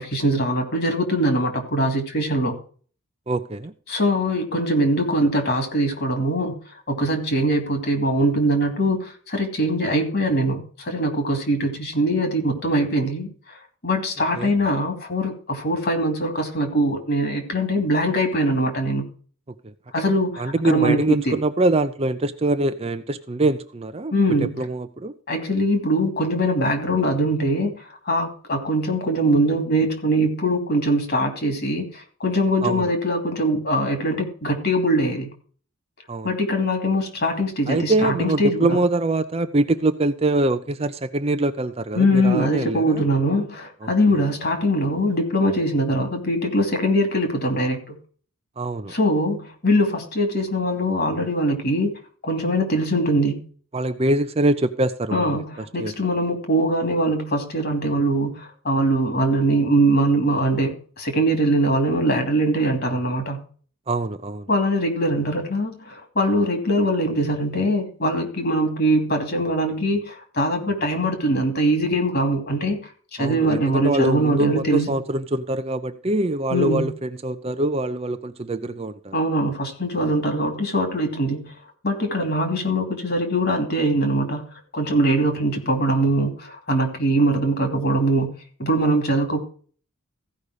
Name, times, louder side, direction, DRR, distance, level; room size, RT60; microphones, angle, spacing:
voice 1, 0.0-2.6 3.9-6.6 6.9-19.1 19.9-21.4 24.1-24.6 25.3-35.3 36.2-38.8 42.0-47.9 48.9-51.9 52.2-53.4 55.1-63.4 64.5-72.8 73.1-74.9 76.5-76.9 79.1-81.5 81.8-84.5 84.7-88.3 88.6-89.4, right 1 dB, 45° left, 2.6 m, -22 dB
voice 2, 3.3-3.7 14.3-14.5 19.6-19.7 20.4-25.1 32.6-32.9 36.1-36.3 37.7-43.0 43.8-43.9 48.6-48.9 53.7-55.3 55.8-56.1 63.9-64.5 73.2-79.1, right 2 dB, 25° right, 0.5 m, -24 dB
15.5 x 5.4 x 4.8 m
head